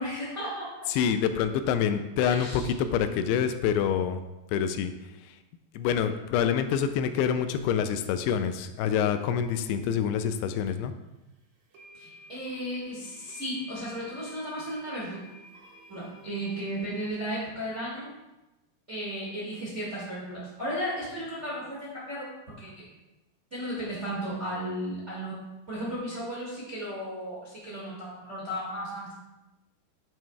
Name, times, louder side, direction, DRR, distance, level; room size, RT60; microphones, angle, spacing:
voice 1, 0.0-0.7 2.2-2.7 11.9-15.2 15.9-18.1 18.9-22.8 23.5-25.4 25.7-29.1, equal, 30° right, -7 dB, 1.3 m, -35 dB
voice 2, 0.9-4.2 4.5-4.9 5.3-5.4 5.7-10.9, left 8 dB, 85° left, 9 dB, 2.6 m, -26 dB
sound 1, 10.7-10.8 11.7-17.1, equal, 60° right, 2.0 m, -50 dB
9.0 x 8.7 x 2.3 m, 1.0 s
omnidirectional pair, 4.6 m